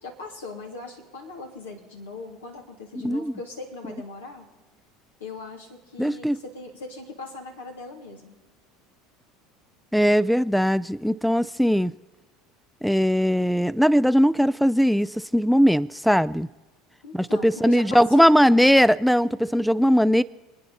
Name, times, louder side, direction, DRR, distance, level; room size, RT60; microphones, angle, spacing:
voice 1, 0.0-4.5 5.2-8.3 17.0-18.5, left 3 dB, 85° left, 3.0 m, -39 dB
voice 2, 6.0-6.4 9.9-11.9 12.8-16.5 17.1-20.2, equal, ahead, 0.4 m, -19 dB
28.5 x 9.8 x 4.2 m
hypercardioid pair, 75°, 0 cm